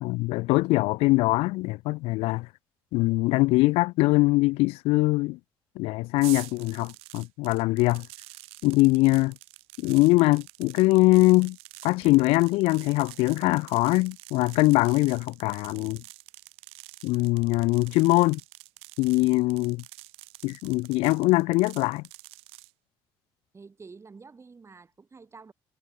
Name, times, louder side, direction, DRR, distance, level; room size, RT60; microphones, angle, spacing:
voice 1, 0.0-2.5 2.9-5.4 5.8-8.1 8.6-9.3 9.8-11.6 11.8-16.0 17.0-18.4 19.0-19.8 20.4-22.0, left 22 dB, 85° left, 0.9 m, -22 dB
sound 1, 6.2-22.7, right 24 dB, 85° right, 1.5 m, -47 dB
voice 2, 23.5-25.5, right 4 dB, 30° right, 4.1 m, -48 dB
supercardioid pair, 80°, 10 cm